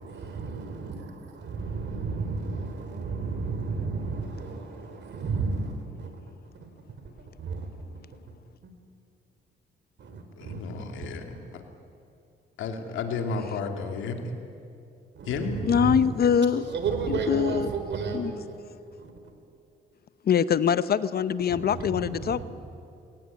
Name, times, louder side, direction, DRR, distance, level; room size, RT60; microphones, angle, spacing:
voice 1, 0.0-6.2 6.6-7.0 7.4-7.7 8.3-8.4 8.6-8.7 10.0-10.6 11.0-11.3 15.1-18.6 18.9-19.3 21.5-22.4, right 4 dB, 65° right, 3.8 m, -33 dB
voice 2, 10.4-11.6 12.6-14.3 15.3-15.6, left 4 dB, 80° left, 2.7 m, -32 dB
voice 3, 15.6-16.6 17.1-17.7 18.1-18.3 20.2-22.4, left 7 dB, 50° left, 0.8 m, -23 dB
22.0 x 18.0 x 9.4 m
cardioid pair, 90°, 20 cm